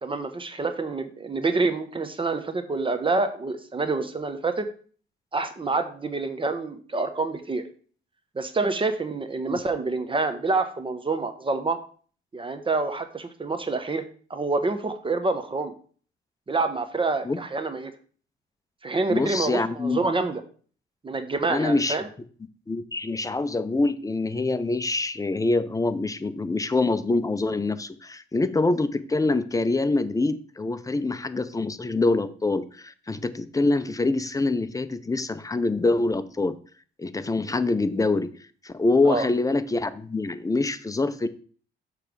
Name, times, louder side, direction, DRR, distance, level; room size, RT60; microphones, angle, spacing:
voice 1, 0.0-4.7 5.3-7.6 8.3-11.8 12.3-14.0 14.3-15.7 16.5-17.9 18.8-20.4 21.0-22.1 39.0-39.3, right 3 dB, 25° right, 9 dB, 0.9 m, -27 dB
voice 2, 19.1-20.0 21.5-22.0 22.7-36.6 37.0-38.3 38.6-41.3, left 3 dB, 15° left, 12 dB, 0.6 m, -25 dB
6.8 x 3.3 x 6.1 m, 0.43 s
cardioid pair, 90°, 20 cm